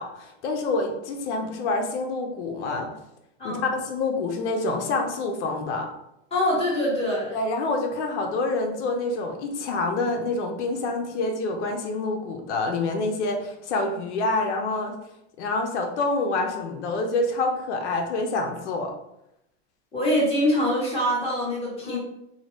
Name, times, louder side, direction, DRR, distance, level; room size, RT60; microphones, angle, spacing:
voice 1, 0.0-2.9 3.4-5.9 7.3-15.0 15.4-18.9 21.8-22.0, left 3 dB, 90° left, 3 dB, 0.6 m, -27 dB
voice 2, 6.3-7.4 19.9-22.0, equal, 15° left, -7 dB, 1.5 m, -24 dB
2.8 x 2.2 x 3.1 m, 0.82 s
supercardioid pair, 135°, 34 cm